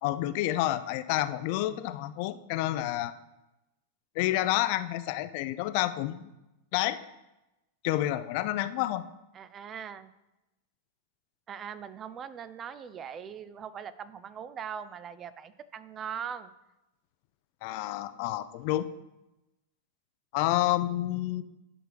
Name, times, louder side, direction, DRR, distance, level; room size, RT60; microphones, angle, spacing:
voice 1, 0.0-3.1 4.2-6.3 6.7-7.0 7.8-9.1 17.6-18.9 20.3-21.4, left 15 dB, 50° left, 12 dB, 0.4 m, -29 dB
voice 2, 9.3-10.1 11.5-16.5, right 8 dB, 30° right, 15 dB, 0.4 m, -40 dB
10.5 x 6.0 x 3.3 m, 0.97 s
hypercardioid pair, 95°, 0 cm